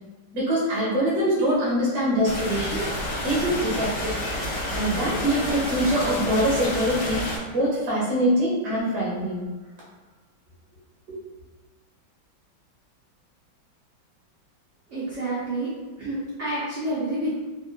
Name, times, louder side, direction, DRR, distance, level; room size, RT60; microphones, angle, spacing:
voice 1, 0.3-4.1 4.7-9.4 11.1-11.2, equal, 45° right, -6 dB, 1.3 m, -24 dB
sound 1, 2.2-7.4, left 1 dB, 85° left, 0.7 m, -29 dB
voice 2, 14.9-15.7 16.0-17.4, right 1 dB, 80° right, -9 dB, 0.6 m, -28 dB
3.4 x 2.2 x 2.2 m, 1.2 s
omnidirectional pair, 2.2 m